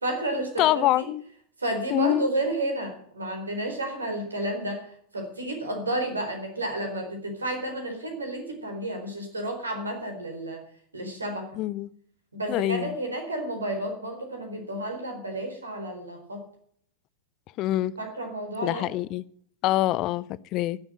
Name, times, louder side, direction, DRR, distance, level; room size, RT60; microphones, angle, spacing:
voice 1, 0.0-1.1 1.6-10.6 10.9-11.5 12.3-16.4 18.0-18.9, right 1 dB, 75° right, 4 dB, 4.2 m, -31 dB
voice 2, 0.6-1.2 1.9-2.3 11.6-11.9 12.5-12.9 17.6-17.9 18.6-19.2 19.6-20.8, left 15 dB, 40° left, 21 dB, 0.6 m, -25 dB
15.5 x 7.3 x 9.0 m, 0.63 s
figure-of-eight pair, 90°, 0 cm